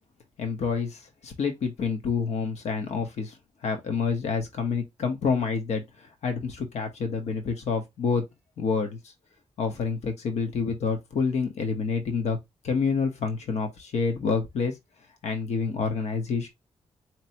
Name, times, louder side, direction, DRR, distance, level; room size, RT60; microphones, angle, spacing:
voice 1, 0.4-3.4 3.6-8.2 8.6-9.1 9.6-12.4 12.6-14.8 15.2-16.5, left 5 dB, 75° left, 1.0 m, -28 dB
4.2 x 3.0 x 2.8 m
wide cardioid pair, 145°, 11 cm